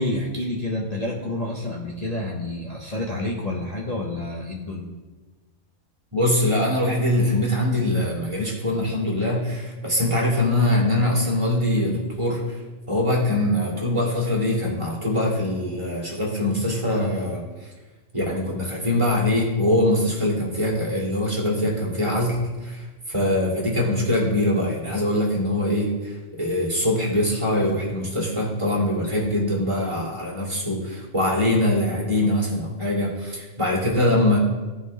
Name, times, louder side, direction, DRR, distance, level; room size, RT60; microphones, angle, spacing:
voice 1, 0.0-4.9, left 1 dB, 35° left, -2 dB, 0.9 m, -28 dB
voice 2, 6.1-12.4 12.9-17.4 18.1-22.4 22.6-34.4, left 1 dB, 25° right, -4 dB, 2.1 m, -23 dB
15.0 x 5.3 x 3.3 m, 1.2 s
omnidirectional pair, 1.3 m